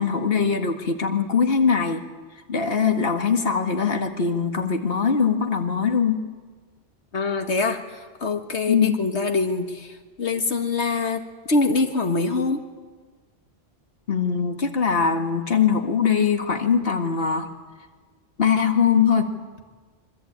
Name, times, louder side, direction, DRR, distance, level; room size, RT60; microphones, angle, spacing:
voice 1, 0.0-2.0 2.5-6.2 8.7-9.0 14.1-17.5 18.4-19.3, left 6 dB, 60° left, 4 dB, 2.1 m, -21 dB
voice 2, 7.1-11.2 11.5-12.6, left 3 dB, 85° left, 4 dB, 2.0 m, -24 dB
26.5 x 24.5 x 8.8 m, 1.4 s
omnidirectional pair, 1.1 m